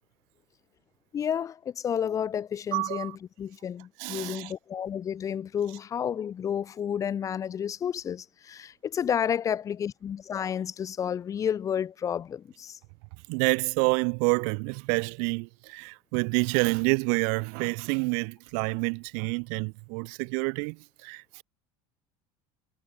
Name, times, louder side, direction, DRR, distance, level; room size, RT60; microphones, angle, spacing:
voice 1, 1.1-12.8, left 8 dB, 25° left, 2.8 m, -31 dB
voice 2, 2.7-3.2 4.0-4.5 13.3-21.4, right 40 dB or more, 65° right, 2.8 m, -28 dB
cardioid pair, 150°, 12 cm